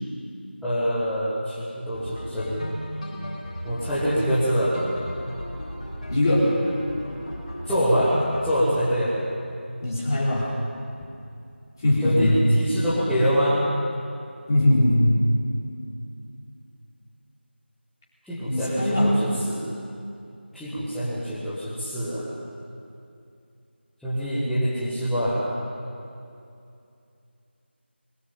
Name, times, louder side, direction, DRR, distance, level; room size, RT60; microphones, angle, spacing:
voice 1, 0.6-2.6 3.6-4.8 7.6-8.2 8.4-9.1 12.0-13.6 18.3-19.6 20.5-22.3 24.0-25.4, equal, ahead, -17 dB, 1.4 m, -25 dB
sound 1, 1.9-8.7, equal, 35° left, 5.3 m, -35 dB
voice 2, 6.1-6.6 9.8-10.5 11.8-12.5 14.5-15.2 18.5-19.3, left 1 dB, 20° left, -6 dB, 4.2 m, -21 dB
22.0 x 18.5 x 8.7 m, 2.6 s
figure-of-eight pair, 170°, 6 cm